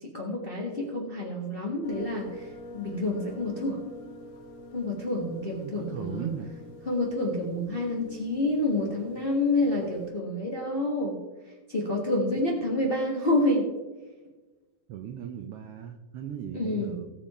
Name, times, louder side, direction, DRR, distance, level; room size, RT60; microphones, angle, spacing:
voice 1, 0.0-2.5 2.7-3.8 4.7-6.3 6.9-11.2 11.7-13.7 16.5-16.9, left 2 dB, 30° left, -1 dB, 1.0 m, -28 dB
sound 1, 1.8-10.1, left 1 dB, 70° left, 1.1 m, -47 dB
voice 2, 5.6-6.5 14.9-17.1, right 9 dB, 85° right, 6 dB, 1.3 m, -37 dB
18.5 x 7.1 x 4.3 m, 1.2 s
omnidirectional pair, 3.6 m